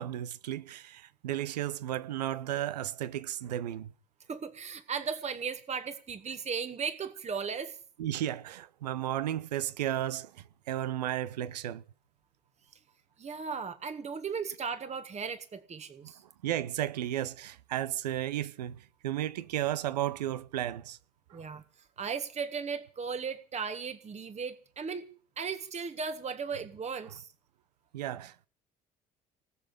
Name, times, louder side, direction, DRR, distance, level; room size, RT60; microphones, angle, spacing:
voice 1, 0.0-3.9 8.0-11.8 16.4-21.0 21.3-21.4 27.9-28.5, right 12 dB, 75° right, 0.7 m, -34 dB
voice 2, 4.3-7.8 13.2-16.2 21.3-25.1 25.4-27.3, right 6 dB, 35° right, 1.5 m, -36 dB
19.5 x 6.9 x 9.9 m
figure-of-eight pair, 50°, 21 cm